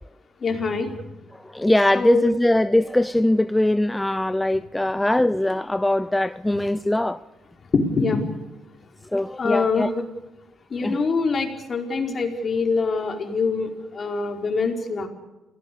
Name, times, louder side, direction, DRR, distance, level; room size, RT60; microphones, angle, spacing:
voice 1, 0.4-1.0 1.9-2.3 7.7-8.3 9.4-10.1 10.7-15.1, left 4 dB, 40° left, 4.8 m, -24 dB
voice 2, 1.5-7.2 9.1-9.9 10.8-11.0 12.1-12.2, left 1 dB, 10° left, 0.8 m, -21 dB
28.0 x 18.0 x 6.9 m
cardioid pair, 90°, 0 cm